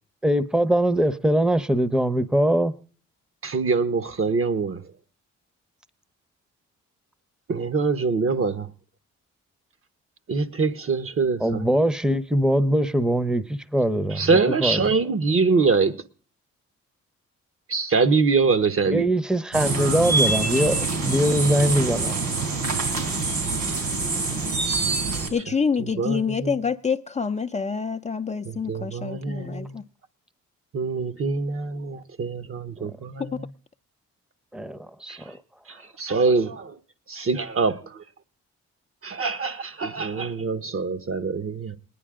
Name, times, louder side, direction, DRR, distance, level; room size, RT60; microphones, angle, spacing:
voice 1, 0.2-2.7 11.4-14.9 18.9-22.1 32.8-32.9 34.5-35.4, right 1 dB, 5° right, 0.9 m, -22 dB
voice 2, 3.4-4.8 7.5-8.7 10.3-11.7 14.1-15.9 17.7-19.1 25.1-25.3 26.0-26.6 28.5-29.8 30.7-33.5 35.1-35.2 35.7-36.7 37.1-37.8 39.0-41.8, right 4 dB, 50° right, 1.2 m, -24 dB
sound 1, 19.5-25.3, right 3 dB, 70° right, 3.6 m, -25 dB
voice 3, 25.3-29.8 33.2-33.3, left 5 dB, 25° left, 0.5 m, -27 dB
20.0 x 10.0 x 3.7 m
cardioid pair, 70°, 29 cm